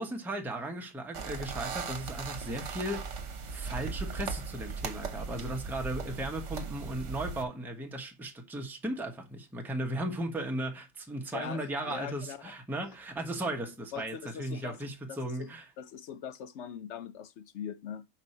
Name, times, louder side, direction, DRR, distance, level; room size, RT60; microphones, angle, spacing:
voice 1, 0.0-3.2 3.5-15.7, right 1 dB, ahead, 0.9 m, -36 dB
sound 1, 1.1-7.5, right 5 dB, 65° right, 1.2 m, -38 dB
voice 2, 11.3-12.5 13.9-18.1, left 8 dB, 70° left, 0.9 m, -42 dB
5.3 x 4.8 x 4.2 m
omnidirectional pair, 1.3 m